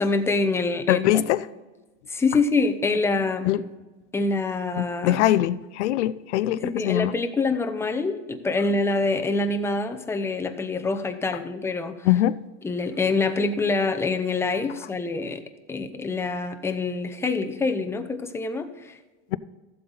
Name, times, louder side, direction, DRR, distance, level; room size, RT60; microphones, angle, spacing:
voice 1, 0.0-1.2 2.1-3.6 4.1-5.2 6.5-12.1 12.6-15.4 15.7-19.0, left 3 dB, 5° left, 7 dB, 0.7 m, -25 dB
voice 2, 0.9-1.4 3.5-3.6 4.8-7.1 12.0-12.4, left 13 dB, 80° left, 17 dB, 0.6 m, -22 dB
14.5 x 7.7 x 4.0 m, 1.2 s
supercardioid pair, 135°, 34 cm